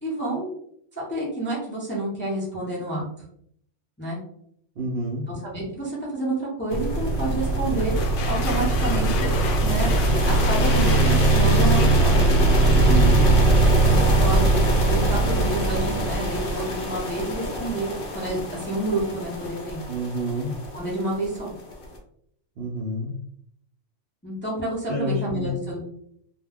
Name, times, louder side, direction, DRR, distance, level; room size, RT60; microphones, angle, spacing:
voice 1, 0.0-0.5 1.0-3.1 4.0-4.2 5.3-8.0 8.3-9.3 9.6-9.9 10.3-12.4 13.8-19.8 20.7-21.5 24.2-25.8, right 2 dB, 15° left, -5 dB, 0.5 m, -29 dB
voice 2, 4.8-5.3 12.7-13.2 19.9-20.6 22.6-23.2 24.9-25.5, equal, 60° right, -2 dB, 0.7 m, -28 dB
sound 1, 6.7-21.8, right 2 dB, 55° left, 0.7 m, -21 dB
sound 2, 7.8-13.4, left 5 dB, 75° left, 0.9 m, -34 dB
2.2 x 2.2 x 3.3 m, 0.70 s
omnidirectional pair, 1.3 m